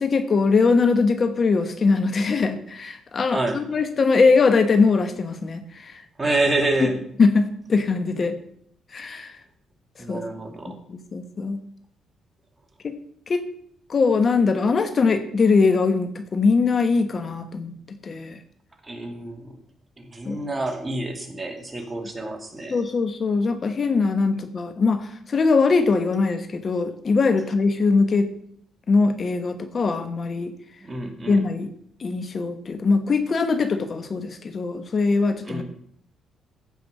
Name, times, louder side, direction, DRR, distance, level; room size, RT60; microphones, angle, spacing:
voice 1, 0.0-5.6 6.8-6.9 7.2-8.3 8.9-9.3 10.1-10.2 10.9-11.6 12.8-12.9 13.3-13.4 13.9-17.7 18.1-18.4 20.3-20.4 22.7-25.0 25.3-28.3 28.9-30.5 31.3-31.7 32.0-35.6, left 4 dB, 45° left, 9 dB, 1.1 m, -21 dB
voice 2, 3.3-3.6 6.2-7.0 10.0-10.8 18.8-19.5 20.0-22.8 30.8-31.4 35.4-35.6, right 2 dB, 20° right, 4 dB, 2.2 m, -27 dB
15.0 x 5.4 x 6.4 m, 0.68 s
cardioid pair, 90°, 0 cm